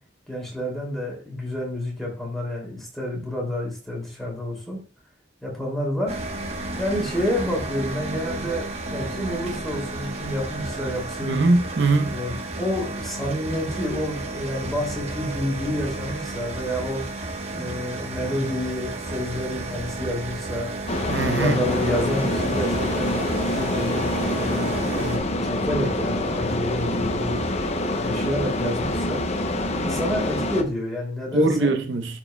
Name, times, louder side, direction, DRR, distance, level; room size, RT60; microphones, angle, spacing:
voice 1, 0.3-4.8 5.4-6.2 6.8-11.4 12.1-17.0 17.5-20.7 21.3-27.4 28.0-29.2 29.8-31.7, left 1 dB, ahead, 2.6 m, -29 dB
sound 1, 6.1-25.2, right 2 dB, 35° right, 1.1 m, -32 dB
voice 2, 11.2-12.1 21.1-21.6 31.3-32.2, right 2 dB, 70° right, 0.7 m, -21 dB
sound 2, 17.5-20.6 22.2-25.2 26.9-29.1, right 1 dB, 20° left, 2.5 m, -45 dB
sound 3, 20.9-30.6, left 1 dB, 35° left, 0.7 m, -26 dB
13.0 x 4.8 x 2.2 m
head